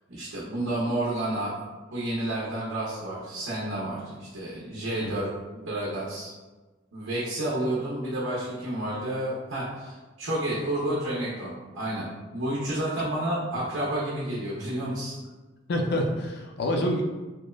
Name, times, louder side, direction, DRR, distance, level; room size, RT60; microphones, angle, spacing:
voice 1, 0.1-1.7 1.9-5.3 5.5-6.3 6.9-12.1 12.3-15.1, right 1 dB, 85° right, -7 dB, 0.6 m, -30 dB
voice 2, 15.7-17.0, left 1 dB, 55° left, 2 dB, 0.4 m, -27 dB
2.8 x 2.1 x 2.2 m, 1.2 s
head